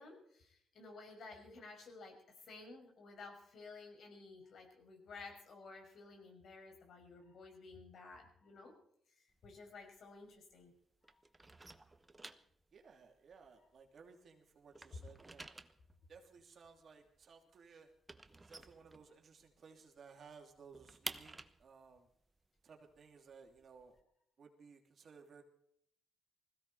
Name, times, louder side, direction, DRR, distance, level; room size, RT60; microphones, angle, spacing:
voice 1, 0.0-8.7 9.2-10.7 11.0-11.2, left 3 dB, 60° left, 2 dB, 5.7 m, -54 dB
sound 1, 9.3-10.8 11.0-14.2 14.5-19.6 19.9-20.0 20.3-24.0, right 2 dB, 15° right, 1.0 m, -52 dB
voice 2, 12.7-15.5 16.1-17.9 18.4-22.1 22.6-24.0 24.4-25.4, right 5 dB, 50° right, 3 dB, 2.9 m, -59 dB
20.5 x 16.0 x 4.2 m, 0.68 s
cardioid pair, 90°, 0 cm